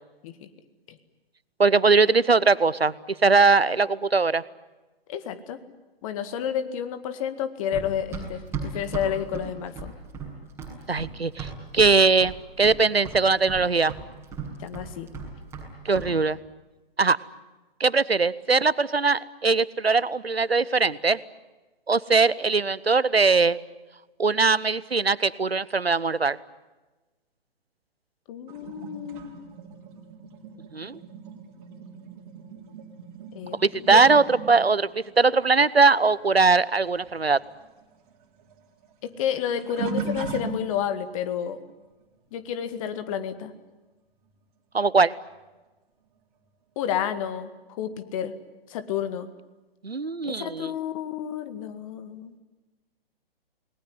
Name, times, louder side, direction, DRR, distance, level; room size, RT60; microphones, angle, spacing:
voice 1, 1.6-2.9 3.2-4.4 10.9-13.9 15.8-16.4 17.0-17.2 17.8-21.2 21.9-23.6 24.2-26.4 30.7-31.0 33.6-34.9 35.2-37.4 44.7-45.1 49.8-50.7, right 4 dB, 85° right, 20 dB, 1.0 m, -21 dB
voice 2, 5.1-5.6 6.0-9.9 14.6-15.1 28.3-29.4 33.3-34.0 39.0-41.6 42.3-43.5 46.8-48.3 48.7-49.3 50.2-52.3, left 9 dB, 35° left, 11 dB, 2.0 m, -30 dB
Run, 7.7-12.0 12.2-12.8 13.1-15.7 15.9-16.1, right 5 dB, 10° right, 6.7 m, -36 dB
sound 1, 28.5-36.5 36.7-41.1 41.7-42.0 44.3-44.4 45.2-45.3, right 5 dB, 40° right, 4.0 m, -38 dB
29.0 x 20.0 x 9.8 m, 1.2 s
figure-of-eight pair, 120°, 30 cm